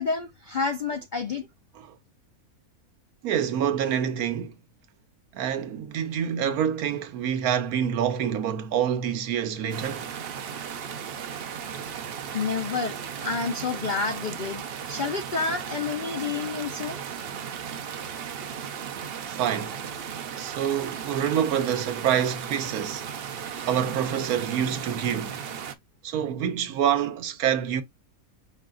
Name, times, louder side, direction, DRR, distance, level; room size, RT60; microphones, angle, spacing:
voice 1, 0.0-1.5 11.8-11.9 12.3-14.6 14.9-17.0, left 5 dB, 65° left, 0.4 m, -29 dB
voice 2, 3.2-4.6 5.3-10.1 19.3-19.8 20.4-23.1 23.6-25.5 26.0-27.8, right 9 dB, 80° right, 1.1 m, -27 dB
sound 1, 9.7-25.7, right 7 dB, 60° right, 0.6 m, -36 dB
5.4 x 2.4 x 3.7 m
omnidirectional pair, 1.5 m